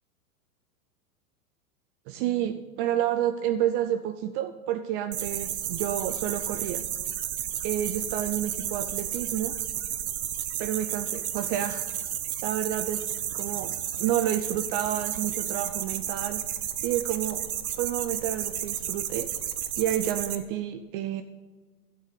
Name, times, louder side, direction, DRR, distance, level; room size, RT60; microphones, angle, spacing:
voice 1, 2.1-6.8 7.6-9.5 10.6-11.9 12.4-16.4 16.8-17.4 17.8-19.3 19.8-21.2, right 11 dB, 40° right, 10 dB, 0.5 m, -30 dB
sound 1, 5.1-20.4, right 10 dB, 70° right, 1.0 m, -32 dB
12.0 x 6.3 x 6.7 m, 1.4 s
hypercardioid pair, 100°, 45 cm